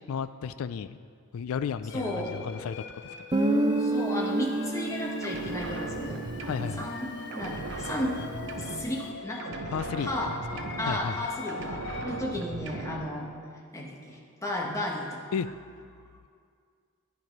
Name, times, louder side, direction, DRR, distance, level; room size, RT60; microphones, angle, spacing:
voice 1, 0.1-1.0 1.3-2.8 6.5-6.9 9.7-11.3 15.3-15.5, left 7 dB, 90° left, 13 dB, 0.3 m, -33 dB
sound 1, 1.9-12.3, left 5 dB, 55° left, 0.6 m, -43 dB
voice 2, 1.9-2.3 3.8-6.2 6.8-8.2 8.6-9.5 10.0-10.3 10.8-13.3 13.7-15.2, left 1 dB, 15° left, -1 dB, 1.3 m, -34 dB
Guitar, 3.3-7.9, right 2 dB, 20° right, 0.5 m, -30 dB
sound 2, 5.2-7.1 7.3-9.1 9.4-11.2 11.5-13.2, right 2 dB, 60° right, 0.8 m, -38 dB
10.5 x 9.7 x 5.3 m, 2.2 s
head